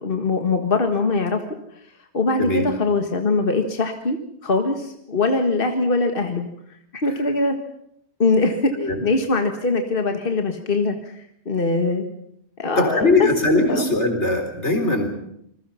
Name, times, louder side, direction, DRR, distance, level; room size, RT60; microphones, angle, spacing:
voice 1, 0.0-1.4 2.1-6.5 6.9-7.6 8.2-12.1 12.6-13.3 13.7-13.8, left 3 dB, 55° left, 5 dB, 1.9 m, -22 dB
voice 2, 12.8-15.1, left 2 dB, 85° left, 5 dB, 4.3 m, -20 dB
27.5 x 21.0 x 5.7 m, 0.73 s
omnidirectional pair, 1.1 m